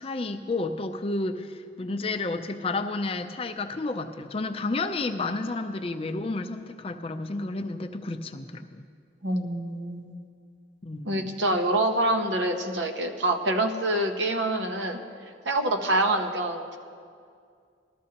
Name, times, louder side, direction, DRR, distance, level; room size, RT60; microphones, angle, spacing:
voice 1, 0.0-8.9 10.8-11.3, left 3 dB, 30° left, 7 dB, 0.5 m, -31 dB
voice 2, 9.2-10.2 11.1-15.0 15.5-16.8, right 1 dB, 80° right, 5 dB, 1.0 m, -26 dB
19.5 x 13.0 x 2.9 m, 2.3 s
head